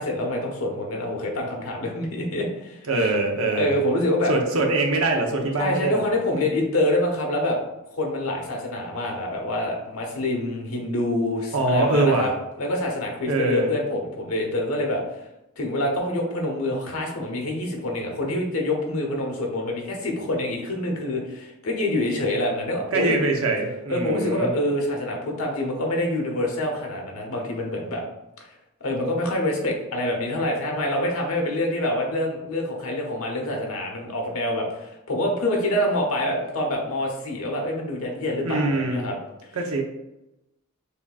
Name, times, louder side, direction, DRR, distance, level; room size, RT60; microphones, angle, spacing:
voice 1, 0.0-3.1 3.6-4.3 5.6-7.6 7.9-12.3 12.6-15.0 15.6-23.2 23.9-28.0 28.8-39.2, left 1 dB, 75° left, 0 dB, 1.0 m, -26 dB
voice 2, 2.9-3.7 4.3-6.0 11.5-12.3 13.3-13.7 22.9-24.5 38.4-39.1 39.5-39.8, right 2 dB, 75° right, 2 dB, 0.8 m, -23 dB
6.7 x 2.8 x 2.4 m, 0.94 s
head